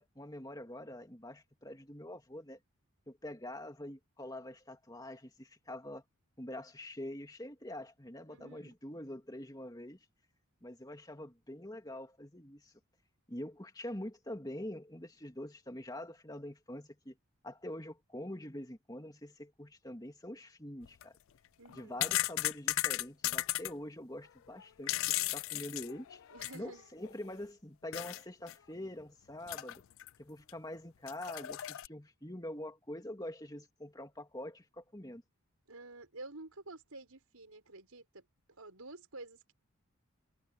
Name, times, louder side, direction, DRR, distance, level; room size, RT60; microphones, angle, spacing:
voice 1, 0.0-2.6 3.1-6.0 6.4-10.0 10.6-12.7 13.3-17.2 17.4-21.1 21.7-26.2 26.5-29.8 30.2-35.2, left 1 dB, 15° left, 2.7 m, -45 dB
voice 2, 8.3-8.7 21.6-22.0 26.3-26.9 35.7-38.2 38.6-39.5, right 2 dB, 85° right, 5.8 m, -50 dB
sound 1, 20.8-21.0 21.7-23.7 24.6-26.7 27.0-27.1 27.9-28.2 28.5-28.6 29.5-30.1 30.5-30.6 31.1-31.9, left 16 dB, 65° left, 0.3 m, -35 dB
head